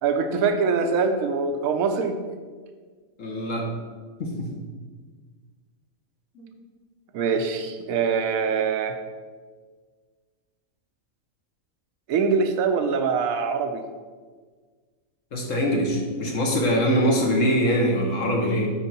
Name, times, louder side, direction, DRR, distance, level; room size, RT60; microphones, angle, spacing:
voice 1, 0.0-2.2 7.1-9.0 12.1-13.8, right 5 dB, 80° right, 7 dB, 1.1 m, -23 dB
voice 2, 3.2-3.6 4.2-4.5 6.3-6.5 15.3-18.7, equal, 65° left, 0 dB, 1.6 m, -23 dB
9.8 x 4.6 x 4.1 m, 1.5 s
omnidirectional pair, 1.5 m